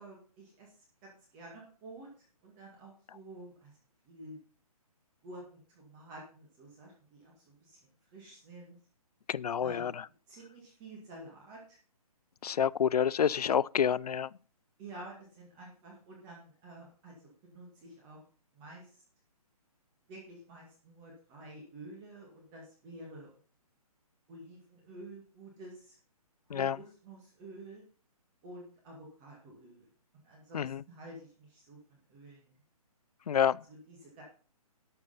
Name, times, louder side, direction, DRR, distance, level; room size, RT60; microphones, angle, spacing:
voice 1, 0.0-3.8 4.0-4.4 5.2-7.8 8.1-8.8 9.6-9.9 10.3-11.8 14.8-18.2 18.5-19.0 20.1-23.3 24.3-26.0 26.5-27.8 28.4-29.9 30.2-32.6 33.7-34.2, right 1 dB, 15° right, 1.9 m, -50 dB
voice 2, 9.3-9.9 12.4-14.3 26.5-26.8 30.5-30.8 33.3-33.6, left 8 dB, 80° left, 0.5 m, -28 dB
12.0 x 6.8 x 5.6 m
hypercardioid pair, 175°, 20 cm